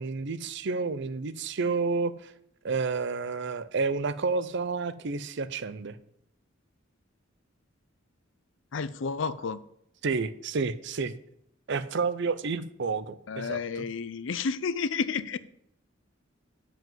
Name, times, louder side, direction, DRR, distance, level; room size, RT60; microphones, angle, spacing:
voice 1, 0.0-2.3 2.6-5.9 10.0-11.1 11.7-13.9, right 4 dB, 60° right, 14 dB, 0.6 m, -30 dB
voice 2, 8.7-9.6 13.3-15.4, left 5 dB, 65° left, 15 dB, 0.5 m, -31 dB
7.6 x 5.3 x 7.3 m, 0.72 s
head